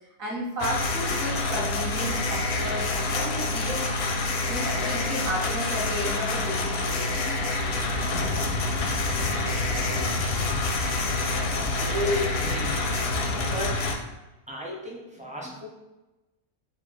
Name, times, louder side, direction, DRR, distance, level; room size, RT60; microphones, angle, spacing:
voice 1, 0.2-3.8 4.4-7.0, equal, 70° right, -3 dB, 1.5 m, -33 dB
sound 1, 0.6-14.0, left 2 dB, 60° left, 0.7 m, -27 dB
sound 2, 7.6-13.9, left 2 dB, 85° left, 1.2 m, -33 dB
voice 2, 11.7-12.9 13.4-13.9 14.5-15.7, left 1 dB, 10° right, -2 dB, 0.5 m, -32 dB
4.2 x 2.3 x 4.5 m, 1.0 s
omnidirectional pair, 1.5 m